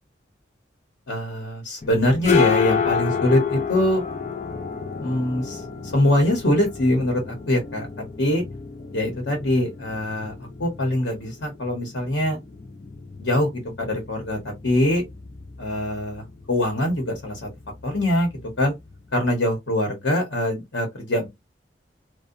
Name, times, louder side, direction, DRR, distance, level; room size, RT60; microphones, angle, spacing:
voice 1, 1.1-4.0 5.0-7.9 8.2-8.4 8.9-12.4 13.2-15.0 15.6-17.5 17.8-18.7 19.1-21.3, left 1 dB, 90° left, 1.0 m, -23 dB
sound 1, 1.8-19.3, left 7 dB, 40° left, 0.4 m, -31 dB
2.6 x 2.2 x 2.4 m
head